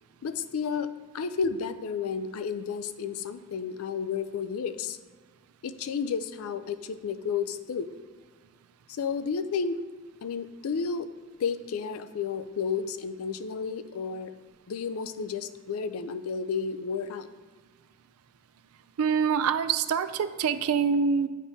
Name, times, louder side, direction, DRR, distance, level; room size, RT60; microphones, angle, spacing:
voice 1, 0.2-0.9 1.1-5.0 5.6-7.9 8.9-9.8 10.2-11.1 11.4-14.3 14.7-17.3, left 6 dB, 75° left, 12 dB, 0.4 m, -32 dB
voice 2, 19.0-21.3, right 6 dB, 85° right, 11 dB, 0.4 m, -25 dB
8.4 x 5.2 x 2.7 m, 1.5 s
head